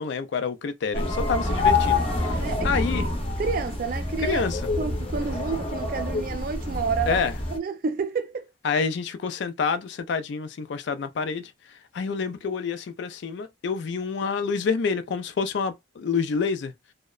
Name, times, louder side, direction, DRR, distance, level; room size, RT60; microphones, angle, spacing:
voice 1, 0.0-3.1 4.2-4.6 7.1-7.3 8.6-11.5 11.9-16.7, left 5 dB, 60° left, 0.3 m, -28 dB
sound 1, 0.9-7.6, left 3 dB, 30° left, 0.6 m, -26 dB
voice 2, 2.4-2.7 3.0-3.1 3.4-4.4 4.8-7.2 7.5-8.5, right 5 dB, 45° right, 0.3 m, -29 dB
2.7 x 2.0 x 2.3 m
head